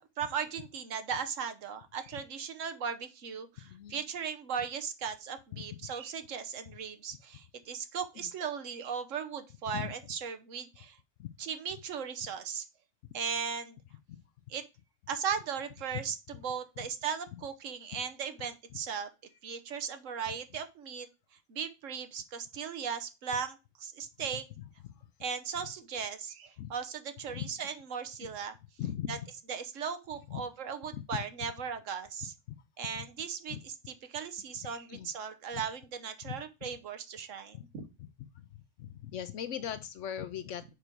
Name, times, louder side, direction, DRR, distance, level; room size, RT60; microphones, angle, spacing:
voice 1, 0.2-11.0 11.4-12.7 13.1-13.8 14.5-14.6 15.1-19.1 19.4-21.1 21.5-24.5 25.2-28.5 29.1-29.2 29.5-32.3 32.8-33.7 34.1-37.8, right 7 dB, 65° right, 8 dB, 1.1 m, -37 dB
voice 2, 3.6-4.0 5.5-5.9 8.2-8.3 9.7-9.9 11.2-11.3 14.1-14.2 15.9-16.0 24.9-25.0 26.6-26.7 27.3-27.5 28.2-28.3 28.8-29.2 30.3-30.4 30.9-31.2 32.5-32.6 33.5-33.6 34.9-35.1 36.2-36.4 37.5-38.5 38.8-40.7, left 10 dB, 65° left, 13 dB, 0.8 m, -40 dB
6.7 x 5.0 x 4.5 m, 0.28 s
omnidirectional pair, 1.5 m